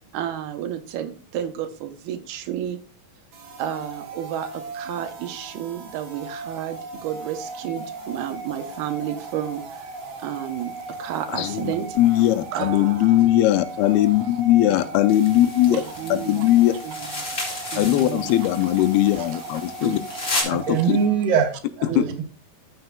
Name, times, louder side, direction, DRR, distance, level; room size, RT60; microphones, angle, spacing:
voice 1, 0.1-2.8 3.6-12.0 12.5-13.3 13.8-13.9 14.2-14.3 14.6-14.9 15.7-16.5 16.8-17.4 17.7-18.3 18.6-18.7 19.1-19.4 19.8-20.2 20.7-20.8 21.9-22.1, right 10 dB, 85° right, 8 dB, 2.9 m, -32 dB
sound 1, 3.3-21.5, right 3 dB, 55° right, 2.8 m, -38 dB
voice 2, 11.3-15.8 16.1-16.7 17.8-20.0 20.4-21.0 22.0-22.1, left 14 dB, 90° left, 9 dB, 2.5 m, -19 dB
sound 2, 15.1-20.4, left 2 dB, 20° left, 1.7 m, -33 dB
voice 3, 20.4-21.5 21.8-22.2, right 7 dB, 70° right, 4 dB, 3.1 m, -22 dB
14.0 x 6.6 x 2.3 m, 0.37 s
omnidirectional pair, 4.4 m